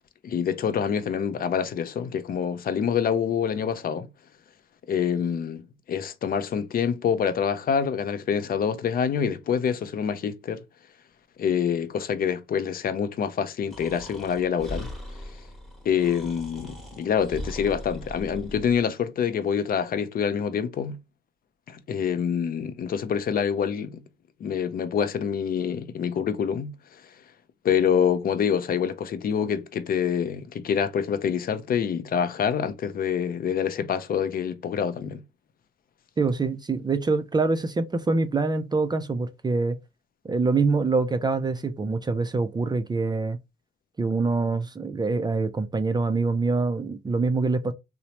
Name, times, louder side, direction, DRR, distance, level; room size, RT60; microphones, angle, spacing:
voice 1, 0.2-4.1 4.9-10.6 11.4-14.9 15.8-21.0 21.7-24.0 24.4-26.8 27.6-35.2, left 7 dB, 45° left, 0.5 m, -26 dB
Breathing, 13.7-18.8, left 1 dB, ahead, 1.1 m, -39 dB
voice 2, 36.2-39.8 40.2-43.4 44.0-47.7, right 3 dB, 20° right, 0.4 m, -25 dB
3.0 x 2.0 x 2.8 m
cardioid pair, 90°, 20 cm